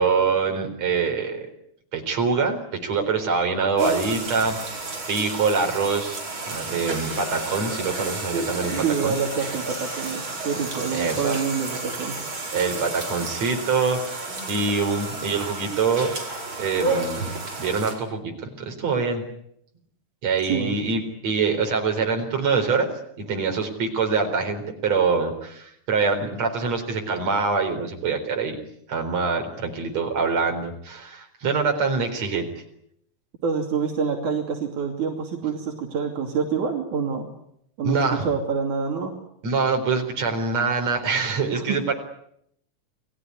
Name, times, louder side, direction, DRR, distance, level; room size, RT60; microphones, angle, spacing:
voice 1, 0.0-1.5 1.9-2.6 2.8-6.2 6.5-8.7 9.0-9.2 10.9-11.3 12.5-16.1 16.6-17.2 17.6-19.2 20.2-22.9 23.2-28.6 28.9-32.5 37.8-38.3 39.4-41.9, right 4 dB, 60° right, 4 dB, 5.3 m, -24 dB
sound 1, 3.8-17.9, right 3 dB, 40° right, 5.9 m, -31 dB
voice 2, 8.8-12.1 20.5-20.8 33.4-37.3 37.8-39.1 41.5-41.7, right 6 dB, 80° right, 2 dB, 4.2 m, -27 dB
29.5 x 18.5 x 9.7 m, 0.75 s
omnidirectional pair, 3.4 m